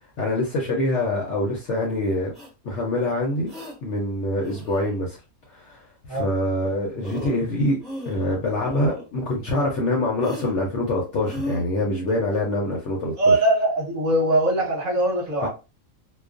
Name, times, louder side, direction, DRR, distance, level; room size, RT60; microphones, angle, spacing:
voice 1, 0.2-2.3 2.6-3.5 3.8-5.2 5.5-7.8 8.1-13.3 15.4-15.5, left 1 dB, 65° left, 0.8 m, -25 dB
sound 1, 2.3-2.5 3.5-3.7 4.4-5.0 6.6-6.7 7.0-7.5 7.8-8.3 8.6-9.1 10.2-10.5 11.2-11.6, left 1 dB, ahead, 0.7 m, -35 dB
voice 2, 13.2-15.5, right 1 dB, 35° right, 0.9 m, -21 dB
2.3 x 2.3 x 2.4 m
omnidirectional pair, 1.5 m